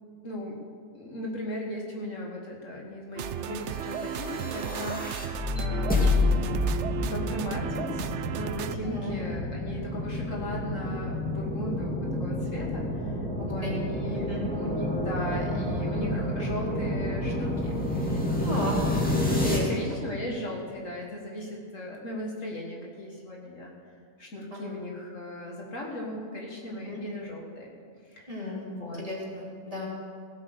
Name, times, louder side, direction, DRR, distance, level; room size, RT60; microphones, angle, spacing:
voice 1, 0.2-0.6 0.9-6.6 7.0-18.6 18.8-19.0 19.3-23.7 24.2-27.7 28.0-29.0, left 1 dB, 55° left, -1 dB, 2.1 m, -37 dB
sound 1, 3.2-8.8, right 8 dB, 65° right, 0.7 m, -34 dB
sound 2, 3.8-19.6, left 1 dB, 5° left, 2.3 m, -29 dB
voice 2, 8.8-9.1 13.4-13.7 14.1-14.4 18.4-18.8 19.4-19.7 24.5-24.6 26.9-27.0 28.3-28.7 29.0-29.9, left 1 dB, 20° right, -5 dB, 3.2 m, -34 dB
16.5 x 8.2 x 6.7 m, 2.2 s
omnidirectional pair, 1.7 m